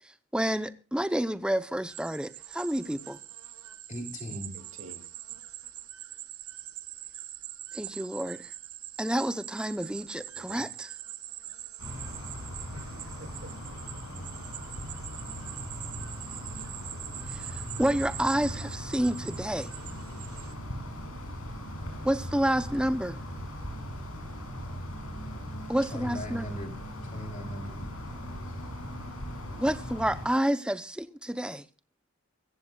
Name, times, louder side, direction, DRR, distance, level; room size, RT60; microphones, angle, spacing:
voice 1, 0.3-3.2 7.7-8.5 9.0-10.9 17.3-17.4 17.8-19.7 22.0-23.2 25.7-26.5 29.6-31.6, right 1 dB, 5° right, 0.7 m, -29 dB
sound 1, 1.9-20.5, right 13 dB, 85° right, 1.1 m, -43 dB
voice 2, 3.9-4.6 25.9-26.7 27.0-27.8, equal, 35° left, 3.3 m, -38 dB
voice 3, 4.5-5.1 10.3-10.7 12.7-13.6 13.9-14.2 17.1-17.2, right 1 dB, 65° right, 2.4 m, -49 dB
sound 2, 11.8-30.3, equal, 80° left, 6.5 m, -39 dB
23.5 x 15.0 x 2.3 m
head